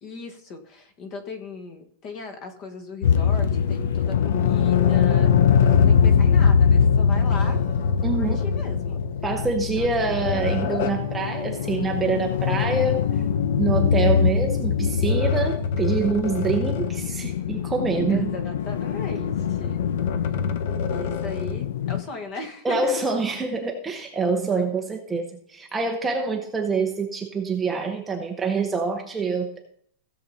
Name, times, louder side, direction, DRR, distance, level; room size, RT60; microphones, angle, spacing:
voice 1, 0.0-5.3 5.6-7.6 8.2-9.0 9.8-10.2 18.1-19.8 20.9-22.9, left 3 dB, 30° left, 6 dB, 1.4 m, -37 dB
sound 1, 3.0-22.0, left 7 dB, 90° left, 0.9 m, -22 dB
sound 2, 4.0-6.0 7.1-9.2 9.8-11.1 11.9-13.4 14.6-17.1 17.5-17.6 18.9-21.7, left 5 dB, 50° left, 1.0 m, -30 dB
voice 2, 8.0-8.4 9.2-13.2 13.6-18.3 22.6-29.6, right 4 dB, 10° right, 2 dB, 0.8 m, -26 dB
16.0 x 6.9 x 4.1 m, 0.66 s
supercardioid pair, 180°, 0 cm